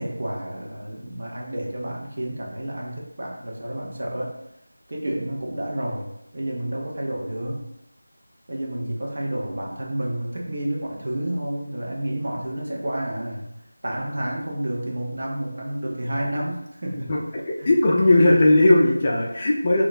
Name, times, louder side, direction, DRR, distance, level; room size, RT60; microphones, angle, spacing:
voice 1, 0.0-4.3 4.9-7.6 8.5-13.5 13.8-17.1 17.6-17.7, right 1 dB, 50° right, -2 dB, 0.7 m, -30 dB
voice 2, 17.7-19.8, left 1 dB, 25° left, -3 dB, 0.4 m, -17 dB
2.3 x 2.1 x 3.8 m, 0.83 s
figure-of-eight pair, 170°, 0 cm